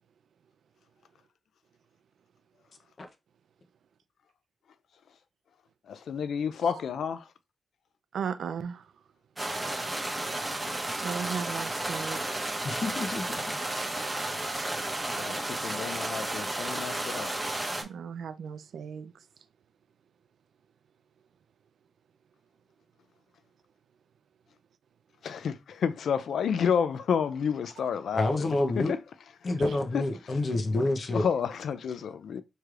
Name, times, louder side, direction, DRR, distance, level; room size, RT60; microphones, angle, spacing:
voice 1, 5.9-7.3 10.2-10.9 15.0-17.4 25.2-28.5 28.8-29.0 29.9-30.0 31.1-32.4, left 7 dB, 75° left, 0.4 m, -30 dB
voice 2, 8.1-8.9 11.0-12.4 17.8-19.1, right 6 dB, 75° right, 0.4 m, -36 dB
sound 1, 9.4-17.8, right 1 dB, 15° right, 1.0 m, -32 dB
voice 3, 12.6-13.6 28.1-28.9 29.4-31.3, left 2 dB, 40° left, 0.7 m, -28 dB
4.6 x 3.1 x 2.4 m
cardioid pair, 110°, 0 cm